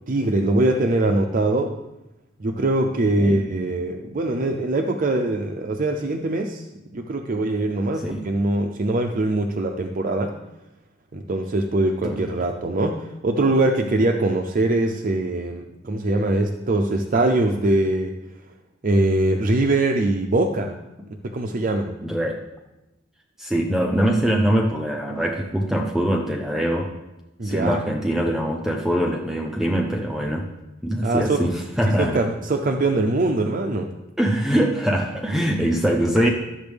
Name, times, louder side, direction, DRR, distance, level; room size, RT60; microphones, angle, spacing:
voice 1, 0.1-1.8 2.4-6.6 6.9-10.3 11.1-18.1 18.8-20.8 21.2-22.0 27.4-27.8 31.0-31.4 32.0-33.9, right 2 dB, 45° right, 4 dB, 0.6 m, -22 dB
voice 2, 22.0-22.4 23.4-26.9 27.4-30.5 30.8-32.2 34.2-36.3, right 1 dB, ahead, 0 dB, 0.7 m, -23 dB
12.0 x 7.1 x 3.5 m, 0.97 s
head